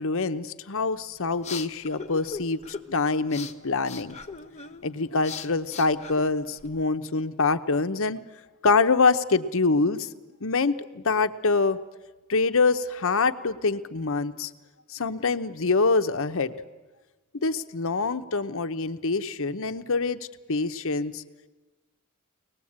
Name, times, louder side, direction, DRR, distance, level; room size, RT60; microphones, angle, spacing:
voice 1, 0.0-4.2 4.8-8.2 8.6-10.1 10.4-11.8 12.3-14.5 14.9-16.5 17.4-21.2, left 4 dB, 65° left, 9 dB, 0.9 m, -25 dB
sound 1, 0.9-6.8, left 5 dB, 30° left, 1.1 m, -41 dB
23.5 x 19.5 x 8.7 m, 1.2 s
head